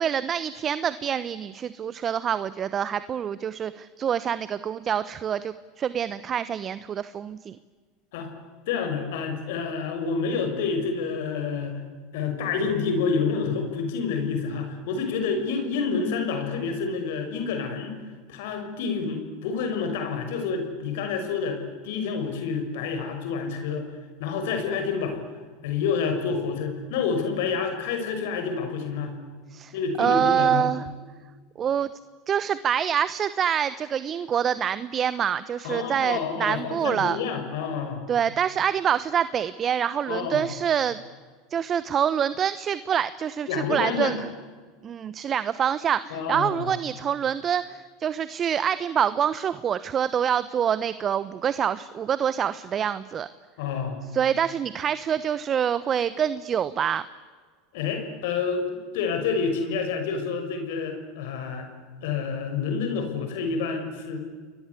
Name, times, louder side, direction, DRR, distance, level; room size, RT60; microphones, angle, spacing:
voice 1, 0.0-7.6 29.5-29.7 30.0-30.8 31.6-31.9 32.3-37.2 38.1-41.0 41.5-44.3 44.8-53.3 54.1-57.0, right 8 dB, 35° right, 15 dB, 1.0 m, -26 dB
voice 2, 8.7-11.8 12.1-17.9 18.3-23.9 24.2-25.2 25.6-29.1 29.7-30.7 35.6-38.1 40.1-40.5 43.5-44.2 46.1-46.7 53.6-54.1 57.7-61.7 62.0-64.2, left 5 dB, 70° left, 6 dB, 6.1 m, -28 dB
30.0 x 22.0 x 8.4 m, 1.5 s
hypercardioid pair, 95°, 0 cm